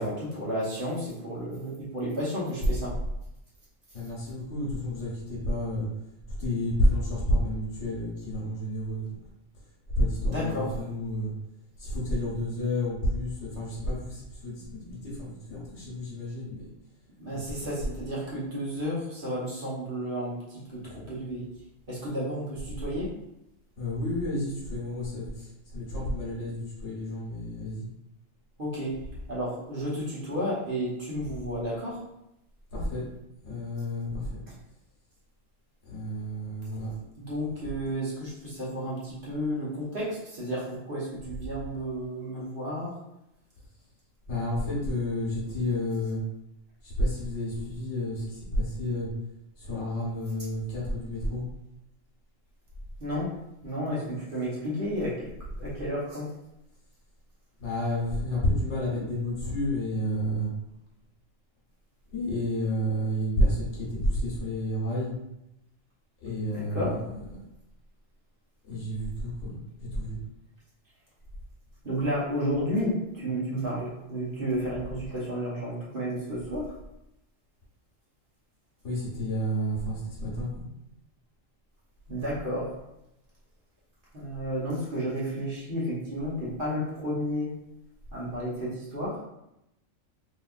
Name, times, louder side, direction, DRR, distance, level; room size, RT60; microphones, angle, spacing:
voice 1, 0.0-2.9 10.2-10.8 17.2-21.4 21.9-23.1 28.6-28.9 29.3-32.0 34.5-34.6 37.2-42.9 53.0-53.3 53.6-55.3 55.6-56.3 66.5-67.0 71.8-76.7 82.1-82.8 84.1-87.5 88.1-89.2, equal, 45° right, -7 dB, 1.0 m, -32 dB
voice 2, 3.9-5.9 6.3-9.2 10.0-11.3 11.8-16.7 17.3-17.7 20.8-21.0 23.8-27.9 32.7-33.0 33.4-34.4 35.8-37.0 44.3-46.2 46.8-49.1 49.6-51.4 57.6-60.5 62.1-65.1 66.2-67.3 68.7-70.2 78.8-80.6, left 1 dB, 65° left, -5 dB, 1.3 m, -30 dB
3.4 x 2.8 x 2.4 m, 0.86 s
omnidirectional pair, 1.3 m